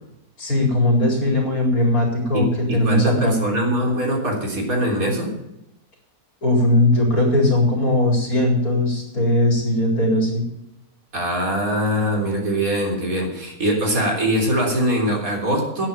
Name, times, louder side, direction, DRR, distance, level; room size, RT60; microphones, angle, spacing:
voice 1, 0.4-3.4 6.4-10.5, left 1 dB, 70° left, 0 dB, 5.0 m, -19 dB
voice 2, 2.3-5.4 11.1-15.9, equal, 65° right, 0 dB, 4.1 m, -22 dB
11.5 x 9.7 x 7.3 m, 0.87 s
omnidirectional pair, 1.6 m